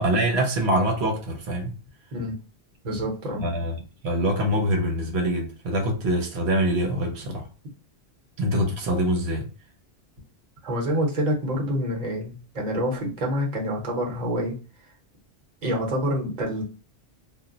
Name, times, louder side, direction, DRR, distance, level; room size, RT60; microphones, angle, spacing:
voice 1, 0.0-1.7 3.4-3.7 4.0-7.5 8.4-9.5, right 1 dB, 80° right, 0.9 m, -24 dB
voice 2, 2.8-3.4 10.6-14.6 15.6-16.6, equal, 45° right, 0.9 m, -27 dB
2.2 x 2.0 x 3.7 m
omnidirectional pair, 1.1 m